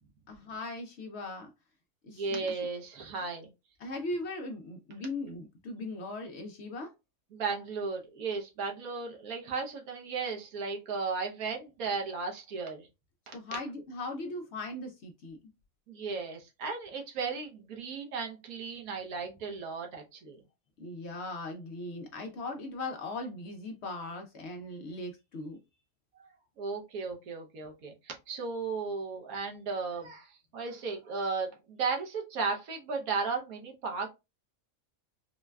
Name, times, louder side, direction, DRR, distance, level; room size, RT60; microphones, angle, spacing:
voice 1, 0.3-1.5 2.0-2.6 3.8-6.9 13.3-15.4 20.8-25.6, left 2 dB, 65° left, 0.7 m, -39 dB
voice 2, 2.1-3.5 7.3-12.9 13.3-13.4 15.9-20.4 26.2-26.3 26.6-34.1, right 4 dB, 80° right, 1.3 m, -35 dB
3.8 x 2.2 x 2.2 m
omnidirectional pair, 1.5 m